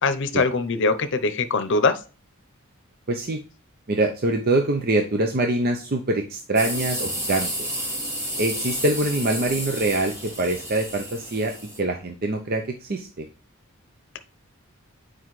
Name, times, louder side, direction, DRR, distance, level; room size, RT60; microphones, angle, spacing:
voice 1, 0.0-2.0, left 3 dB, 60° left, 10 dB, 0.7 m, -22 dB
voice 2, 3.1-3.4 3.9-7.8 8.4-11.5 11.8-13.3, right 2 dB, 45° right, 4 dB, 0.6 m, -24 dB
sound 1, 6.6-11.8, equal, 15° right, 1.5 m, -31 dB
7.7 x 4.8 x 3.1 m, 0.34 s
head